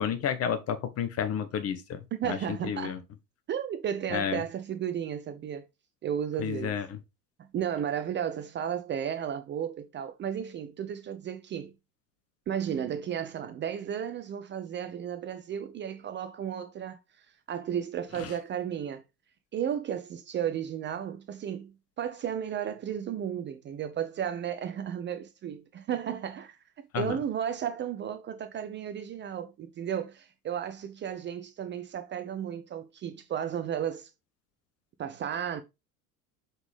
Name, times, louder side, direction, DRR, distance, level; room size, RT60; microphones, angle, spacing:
voice 1, 0.0-2.4 2.6-3.0 4.1-4.4 6.4-7.0 18.2-18.3 26.9-27.2, left 8 dB, 30° left, 1.1 m, -31 dB
voice 2, 2.2-3.0 3.5-5.7 6.0-6.8 7.5-11.7 12.5-17.0 17.5-19.0 19.5-34.1 35.0-35.6, right 9 dB, 25° right, 0.6 m, -34 dB
6.0 x 5.4 x 3.5 m
figure-of-eight pair, 75°, 46 cm